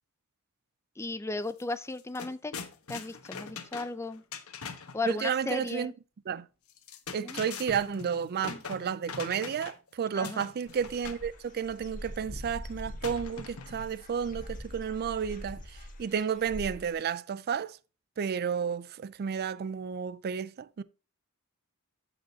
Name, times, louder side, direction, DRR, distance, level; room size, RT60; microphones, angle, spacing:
voice 1, 1.0-2.5 2.9-4.2 4.9-5.9 7.2-7.4 8.5-8.6 10.1-10.4, left 3 dB, 15° left, 0.4 m, -35 dB
sound 1, 1.5-1.6 1.9-5.0 6.7-9.9 10.2-11.3 13.0-13.9, left 5 dB, 75° left, 1.1 m, -42 dB
voice 2, 5.1-5.9 6.3-6.5 7.1-17.8 18.2-20.8, right 7 dB, 45° right, 0.4 m, -32 dB
Dog / Bird, 10.7-16.9, equal, 40° left, 1.6 m, -43 dB
14.5 x 5.0 x 2.7 m
head